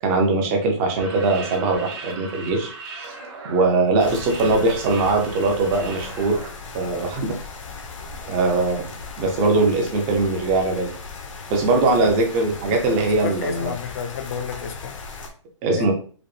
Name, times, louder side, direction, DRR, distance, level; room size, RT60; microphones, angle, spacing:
voice 1, 0.0-2.7 3.0-3.1 3.4-6.4 6.7-7.3 8.3-8.9 9.2-10.9 11.5-13.7 15.6-15.9, right 3 dB, 15° right, 2 dB, 0.6 m, -21 dB
sound 1, 1.0-6.5, right 3 dB, 50° right, 1.4 m, -38 dB
sound 2, 4.0-15.3, left 4 dB, 85° left, 0.9 m, -37 dB
voice 2, 13.2-14.9 15.7-15.9, left 7 dB, 30° left, 7 dB, 0.4 m, -30 dB
4.8 x 2.1 x 3.2 m, 0.41 s
hypercardioid pair, 170°, 16 cm